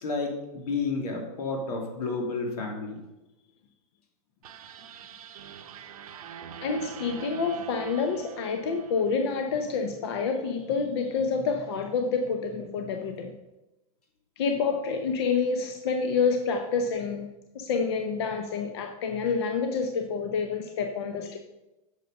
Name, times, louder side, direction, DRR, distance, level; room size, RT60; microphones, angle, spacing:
voice 1, 0.0-3.0, left 3 dB, 80° left, 2 dB, 2.8 m, -31 dB
sound 1, 4.4-9.7, right 7 dB, 70° right, 0.9 m, -43 dB
voice 2, 6.6-13.3 14.4-17.3 17.5-21.4, left 5 dB, 45° left, 5 dB, 0.8 m, -28 dB
8.3 x 6.7 x 5.4 m, 1.0 s
supercardioid pair, 175°, 19 cm